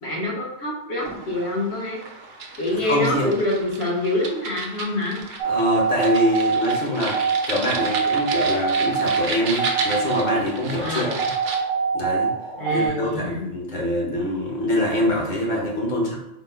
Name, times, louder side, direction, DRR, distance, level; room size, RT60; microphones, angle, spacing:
voice 1, 0.0-2.0 2.6-5.2 10.8-11.2 12.6-13.4, left 1 dB, 60° left, -3 dB, 1.3 m, -26 dB
sound 1, 1.0-11.6, right 4 dB, 70° right, 1.0 m, -33 dB
voice 2, 2.7-3.3 5.4-11.2 11.9-12.3 12.7-16.2, left 1 dB, 40° left, -3 dB, 1.1 m, -24 dB
sound 2, 5.4-12.9, right 5 dB, 50° right, 0.7 m, -25 dB
4.1 x 2.2 x 4.3 m, 0.85 s
omnidirectional pair, 1.3 m